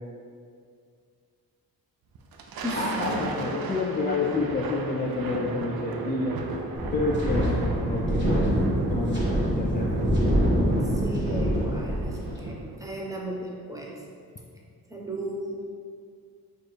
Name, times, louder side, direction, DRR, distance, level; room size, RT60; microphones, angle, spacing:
Thunder, 2.2-12.9, right 3 dB, 75° right, 0.5 m, -35 dB
voice 1, 2.7-6.4 6.9-8.5 8.9-9.9, left 3 dB, 25° left, -3 dB, 0.3 m, -29 dB
Wind, 6.8-12.4, equal, 30° right, 1.4 m, -25 dB
voice 2, 11.0-13.9 14.9-15.6, right 1 dB, 10° right, -2 dB, 0.7 m, -35 dB
4.3 x 2.5 x 3.1 m, 2.2 s
cardioid pair, 65°, 36 cm